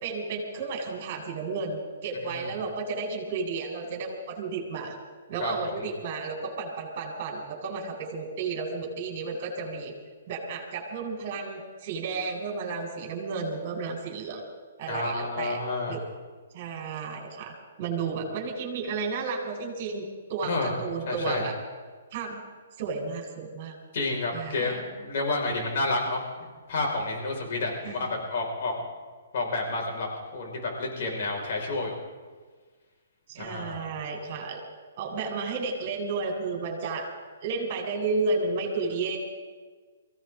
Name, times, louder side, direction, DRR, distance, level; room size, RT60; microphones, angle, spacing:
voice 1, 0.0-5.0 5.3-9.9 10.3-14.5 14.8-15.6 15.9-16.0 16.5-17.5 17.8-20.0 20.3-21.5 22.1-22.4 22.8-23.8 24.3-24.8 27.8-28.1 33.3-34.6 35.0-37.1 37.4-39.2, right 4 dB, 40° right, 1 dB, 4.1 m, -32 dB
voice 2, 5.4-5.7 14.9-16.0 18.0-18.2 20.4-20.7 21.1-21.5 23.9-28.9 29.3-32.0 33.4-33.9, left 2 dB, 55° left, 0 dB, 5.2 m, -30 dB
23.0 x 16.0 x 3.8 m, 1.5 s
hypercardioid pair, 140°, 0 cm